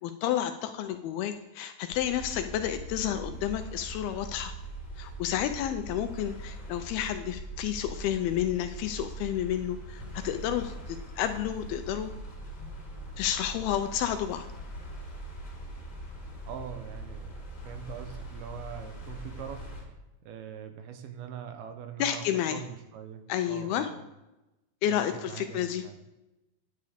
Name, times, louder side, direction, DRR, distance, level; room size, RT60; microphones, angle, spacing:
voice 1, 0.0-4.5 5.0-12.1 13.2-14.5 22.0-22.6 23.3-23.9 24.8-25.8, left 11 dB, 80° left, 8 dB, 2.3 m, -31 dB
sound 1, 1.9-19.8, right 1 dB, 30° left, 2.2 m, -41 dB
voice 2, 16.5-17.3 17.7-19.9 20.2-22.2 22.5-24.1 24.9-26.0, right 8 dB, 75° right, 7 dB, 2.5 m, -42 dB
9.5 x 9.4 x 5.0 m, 0.96 s
omnidirectional pair, 4.8 m